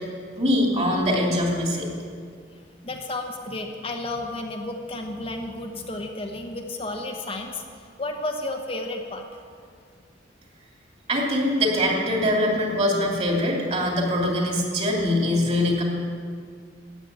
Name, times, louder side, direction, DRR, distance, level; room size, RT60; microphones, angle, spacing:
voice 1, 0.4-1.9 11.1-15.8, left 1 dB, 35° right, 0 dB, 2.8 m, -23 dB
voice 2, 2.8-7.6 8.0-9.2, left 2 dB, 30° left, 2 dB, 1.0 m, -32 dB
13.5 x 9.2 x 8.6 m, 2.1 s
head